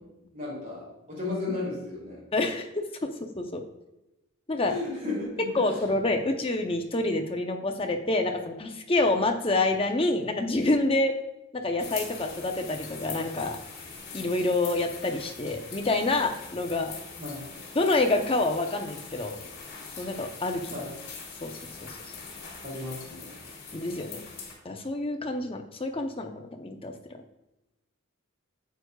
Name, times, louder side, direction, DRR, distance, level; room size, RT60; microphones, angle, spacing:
voice 1, 0.3-2.2 4.5-5.7 17.2-17.5 20.7-21.0 22.6-23.3, left 2 dB, 40° right, -4 dB, 2.9 m, -34 dB
voice 2, 2.3-3.6 4.5-4.7 5.5-11.1 11.5-13.6 14.1-16.9 17.7-19.4 20.0-20.6 21.4-22.0 23.7-24.2 24.6-26.9, left 2 dB, 25° left, 4 dB, 0.7 m, -27 dB
sound 1, 11.8-24.5, left 5 dB, 45° left, 2.4 m, -42 dB
9.4 x 7.9 x 2.3 m, 0.95 s
head